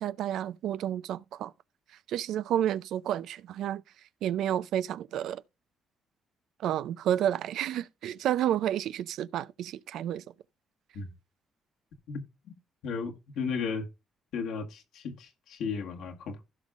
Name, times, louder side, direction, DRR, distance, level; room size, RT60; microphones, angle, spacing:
voice 1, 0.0-1.5 2.1-3.8 4.2-5.4 6.6-10.2, right 11 dB, 80° right, 0.5 m, -30 dB
voice 2, 12.1-12.5 12.8-13.9 14.3-16.5, left 5 dB, 80° left, 1.7 m, -35 dB
16.0 x 5.5 x 2.5 m
cardioid pair, 90°, 0 cm